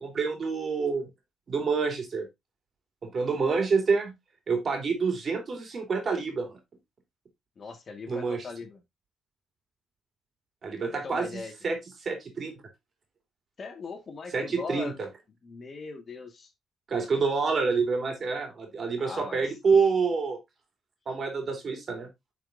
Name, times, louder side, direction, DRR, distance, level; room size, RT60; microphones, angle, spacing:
voice 1, 0.0-1.1 1.5-2.3 3.0-4.1 4.5-6.6 8.1-8.4 10.6-12.6 14.3-15.1 16.9-20.4 21.1-22.1, right 5 dB, 45° right, 3.0 m, -27 dB
voice 2, 7.6-8.8 10.8-11.5 13.6-15.0 15.4-16.5 19.0-19.5, left 4 dB, 45° left, 1.7 m, -40 dB
10.0 x 5.2 x 2.6 m
cardioid pair, 90°, 0 cm